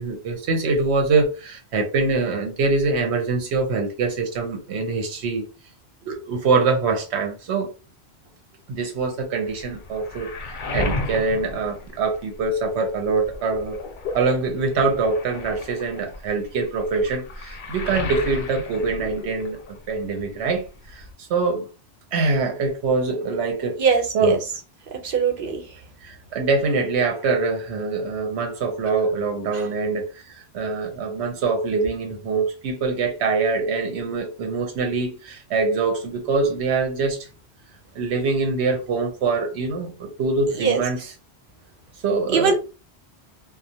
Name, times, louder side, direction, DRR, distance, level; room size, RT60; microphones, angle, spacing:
voice 1, 0.0-5.5 6.0-7.7 8.7-13.8 14.1-19.6 19.9-20.6 20.9-21.7 22.1-23.8 24.1-24.4 26.0-37.2 37.9-41.1 42.0-42.5, right 4 dB, 90° right, 0.9 m, -24 dB
Waves surf, 9.4-12.6 13.0-19.9 20.2-21.1, left 2 dB, 60° left, 0.6 m, -34 dB
voice 2, 23.8-24.4 25.0-25.6 29.5-29.6 40.6-40.8 42.3-42.5, right 5 dB, 60° right, 0.7 m, -21 dB
2.3 x 2.0 x 2.7 m
omnidirectional pair, 1.1 m